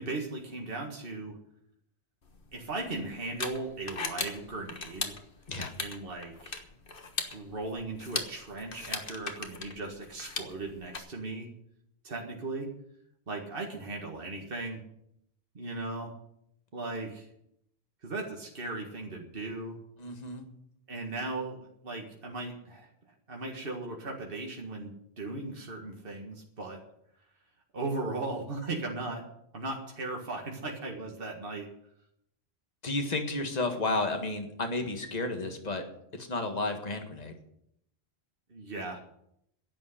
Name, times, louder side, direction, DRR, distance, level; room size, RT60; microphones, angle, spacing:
voice 1, 0.0-1.4 2.5-5.2 5.8-6.7 7.3-11.5 12.0-12.7 13.3-14.8 15.5-16.1 16.7-17.3 18.0-19.8 20.9-21.6 21.8-22.9 23.3-26.8 27.7-29.2 29.5-31.7 38.5-39.0, right 2 dB, 60° right, 0 dB, 2.1 m, -37 dB
sound 1, 2.3-11.0, left 4 dB, 60° left, 1.6 m, -39 dB
voice 2, 20.0-20.5 32.8-35.8 36.1-37.4, left 2 dB, 40° left, 4 dB, 1.9 m, -32 dB
11.0 x 8.6 x 10.0 m, 0.75 s
omnidirectional pair, 1.0 m